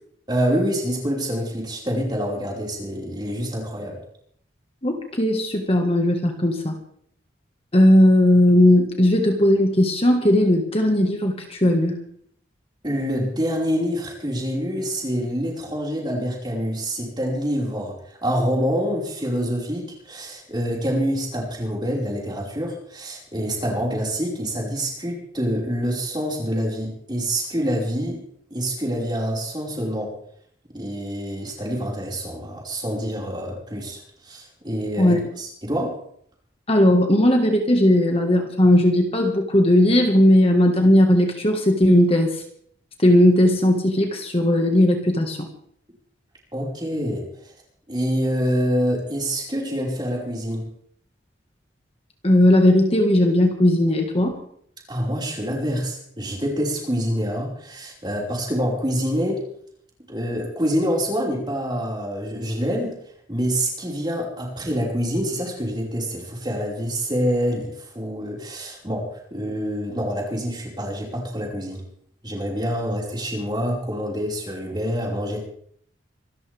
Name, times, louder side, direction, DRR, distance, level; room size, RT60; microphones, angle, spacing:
voice 1, 0.3-4.0 12.8-28.2 28.5-30.1 30.7-36.0 46.5-47.5 47.9-50.7 54.9-59.4 60.1-63.0 63.3-71.8 72.2-75.4, equal, 25° right, -2 dB, 5.3 m, -26 dB
voice 2, 4.8-6.8 7.7-12.0 35.0-35.3 36.7-42.4 43.0-45.5 52.2-54.3, left 1 dB, 30° left, 3 dB, 1.8 m, -17 dB
26.0 x 13.5 x 3.6 m, 0.66 s
head